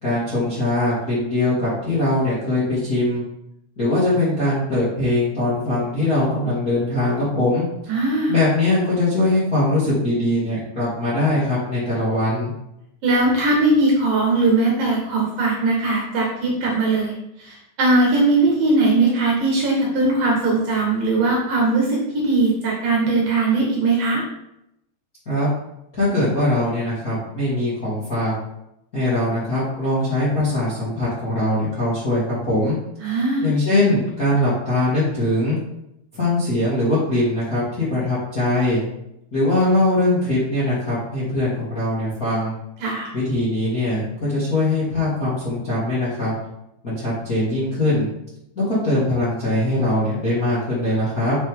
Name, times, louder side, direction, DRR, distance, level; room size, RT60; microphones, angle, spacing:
voice 1, 0.0-3.2 3.8-7.6 8.3-12.5 25.2-25.5 25.9-28.3 28.9-32.7 33.4-35.6 36.1-38.8 39.3-42.5 43.1-44.0 44.3-46.3 46.8-48.1 48.5-51.4, left 1 dB, 30° left, -9 dB, 1.7 m, -21 dB
voice 2, 7.9-8.3 13.0-17.1 17.4-24.2 33.0-33.5 42.8-43.1, right 2 dB, 60° right, -2 dB, 2.6 m, -19 dB
8.0 x 6.6 x 3.6 m, 0.84 s
omnidirectional pair, 5.3 m